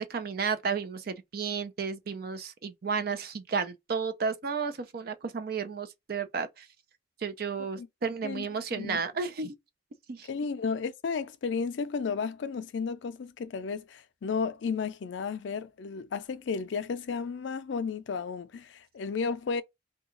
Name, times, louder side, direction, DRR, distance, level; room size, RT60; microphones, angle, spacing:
voice 1, 0.0-6.7 7.2-9.5 10.1-10.3, right 5 dB, 55° right, 0.5 m, -32 dB
voice 2, 10.3-19.6, left 5 dB, 75° left, 0.4 m, -33 dB
2.8 x 2.3 x 3.6 m
head